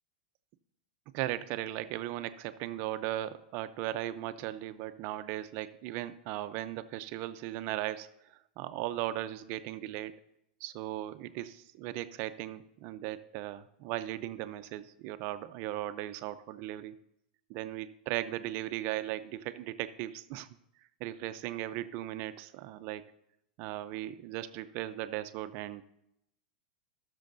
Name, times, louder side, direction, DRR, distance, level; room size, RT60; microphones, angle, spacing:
voice 1, 1.1-10.1 10.6-17.0 17.5-20.5 21.0-23.0 23.6-25.8, right 14 dB, 50° right, 12 dB, 0.6 m, -37 dB
17.5 x 6.4 x 2.6 m, 0.80 s
hypercardioid pair, 125°, 5 cm